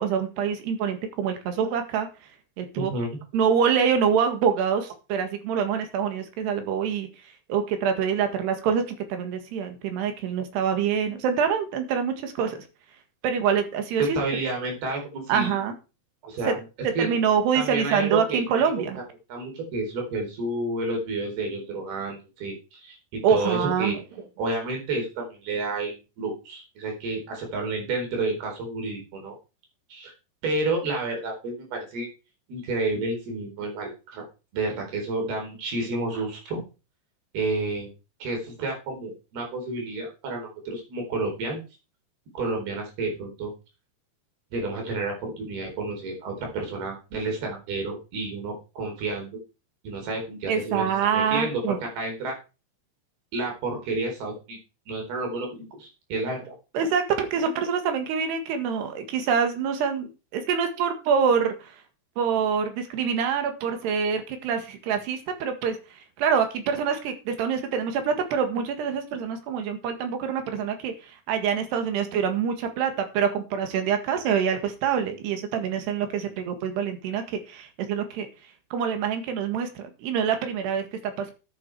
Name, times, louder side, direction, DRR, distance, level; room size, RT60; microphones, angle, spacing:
voice 1, 0.0-2.1 2.6-2.9 3.3-7.1 7.5-12.6 13.2-14.2 15.3-15.8 16.5-16.6 16.8-19.0 23.2-23.9 50.5-51.8 56.7-61.8 62.2-78.3 78.7-81.3, right 7 dB, 90° right, 7 dB, 3.9 m, -25 dB
voice 2, 2.8-3.1 14.0-15.5 16.2-16.6 17.0-17.1 17.5-18.7 19.3-24.0 24.4-29.4 29.9-30.1 30.4-32.1 32.5-34.2 34.5-36.6 37.3-37.9 38.2-41.6 42.3-43.5 44.5-49.3 49.8-52.4 53.3-54.6 54.9-56.5, right 2 dB, 70° right, 2 dB, 6.2 m, -30 dB
11.5 x 8.8 x 4.8 m, 0.31 s
omnidirectional pair, 4.6 m